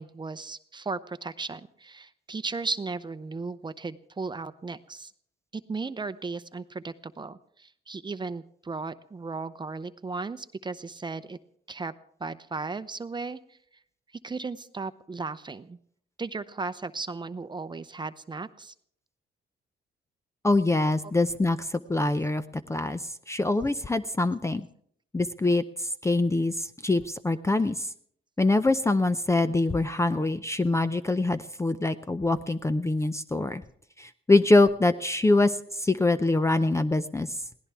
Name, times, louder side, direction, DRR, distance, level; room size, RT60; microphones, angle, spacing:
voice 1, 0.0-5.1 5.5-11.4 11.7-11.9 12.2-13.6 14.2-15.8 16.2-18.7, right 4 dB, 25° right, 12 dB, 0.7 m, -36 dB
voice 2, 20.4-22.4 22.7-24.7 25.1-27.9 28.4-33.6 34.0-37.4, left 2 dB, 15° left, 11 dB, 0.6 m, -24 dB
22.0 x 17.0 x 3.5 m, 0.64 s
cardioid pair, 90°, 20 cm